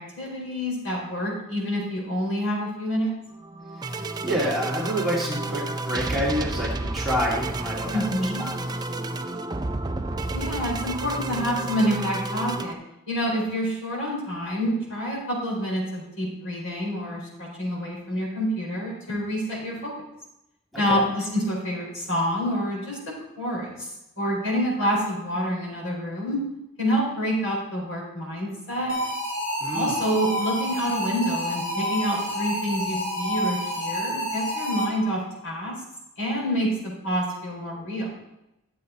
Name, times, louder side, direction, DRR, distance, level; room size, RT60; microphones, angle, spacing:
voice 1, 0.0-3.1 7.9-8.4 10.3-12.8 13.1-19.9 20.8-23.9 24.2-26.4 26.8-28.9 29.7-35.7 36.2-38.1, equal, 60° left, -3 dB, 4.4 m, -27 dB
sound 1, 3.4-12.7, right 2 dB, 20° right, 0.5 m, -31 dB
voice 2, 3.8-8.6 20.7-21.0 29.6-30.0, equal, ahead, -6 dB, 2.3 m, -28 dB
sound 2, 28.9-35.2, equal, 80° left, 3.3 m, -29 dB
12.0 x 7.5 x 4.1 m, 0.88 s
head